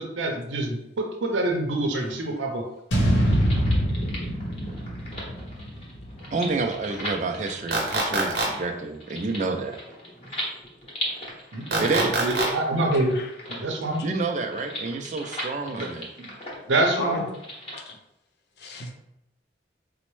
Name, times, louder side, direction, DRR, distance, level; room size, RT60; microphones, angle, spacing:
voice 1, 0.0-2.7 11.5-13.2 13.5-14.0 15.7-15.9 16.2-16.3 16.7-17.2, right 2 dB, 90° right, 2 dB, 0.6 m, -26 dB
sound 1, 2.9-7.1, equal, 90° left, 0.8 m, -25 dB
sound 2, 3.0-17.8, equal, 30° left, 0.8 m, -39 dB
voice 2, 6.3-9.8 11.8-12.3 14.0-16.1, right 3 dB, 40° right, 5 dB, 0.3 m, -28 dB
sound 3, 7.7-8.5 11.7-12.5, right 2 dB, 60° right, 0.9 m, -24 dB
voice 3, 12.9-13.3 16.9-17.2 17.9-18.0 18.6-18.9, left 3 dB, 60° left, 2 dB, 0.5 m, -34 dB
4.1 x 2.1 x 3.1 m, 0.85 s
head